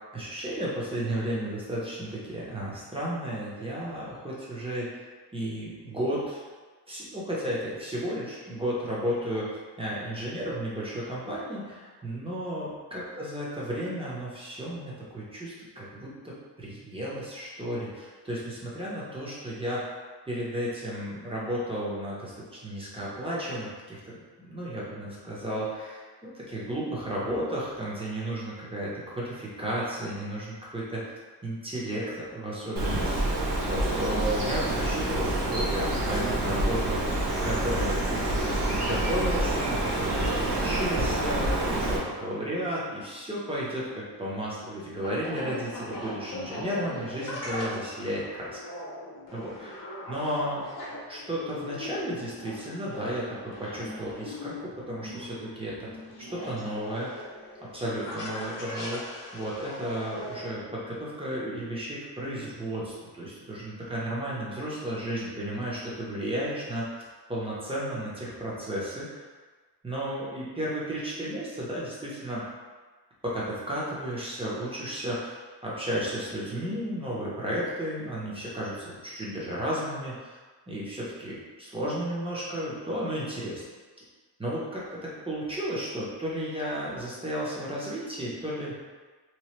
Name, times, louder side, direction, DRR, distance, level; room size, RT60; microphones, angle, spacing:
voice 1, 0.1-4.9 5.3-6.4 6.9-19.9 20.3-31.1 31.4-33.3 33.6-37.1 37.4-48.6 49.3-50.7 51.1-55.9 56.3-57.2 57.6-67.0 67.3-69.3 69.8-72.5 73.2-80.4 80.7-83.6 84.4-88.7, equal, 15° right, -7 dB, 0.7 m, -33 dB
Bird, 32.8-42.0, right 1 dB, 65° right, 0.7 m, -27 dB
sound 1, 43.8-60.5, left 1 dB, 50° left, 0.8 m, -40 dB
2.9 x 2.2 x 3.1 m, 1.4 s
wide cardioid pair, 130°, 43 cm